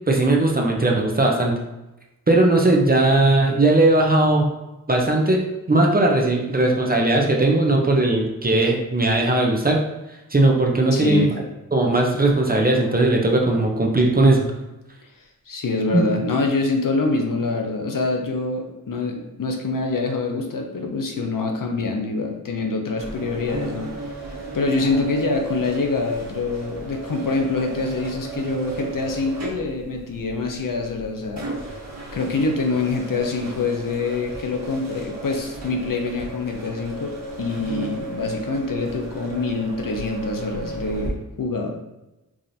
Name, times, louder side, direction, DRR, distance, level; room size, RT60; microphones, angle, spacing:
voice 1, 0.1-1.6 2.3-4.5 4.9-5.4 5.7-9.8 10.3-11.3 11.7-14.5 15.9-16.1, right 2 dB, 25° right, 0 dB, 0.7 m, -18 dB
voice 2, 10.9-11.3 15.5-24.1 24.5-31.7 32.1-37.1 37.4-41.8, left 3 dB, 65° left, 2 dB, 0.7 m, -25 dB
sound 1, 23.0-41.1, right 3 dB, 50° right, 1.3 m, -35 dB
4.8 x 2.6 x 2.6 m, 0.97 s
wide cardioid pair, 60°, 36 cm